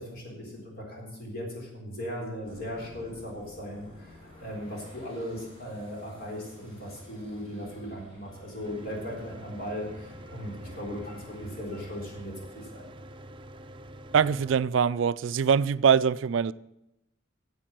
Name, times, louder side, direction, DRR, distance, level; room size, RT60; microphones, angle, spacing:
voice 1, 0.0-12.9, equal, 50° left, 3.9 m, -38 dB
sound 1, 2.4-12.2, left 1 dB, 30° left, 3.3 m, -52 dB
Mechanical fan, 8.6-14.6, right 1 dB, 25° right, 0.6 m, -46 dB
voice 2, 14.1-16.5, right 7 dB, 80° right, 0.4 m, -23 dB
9.9 x 8.1 x 7.6 m
head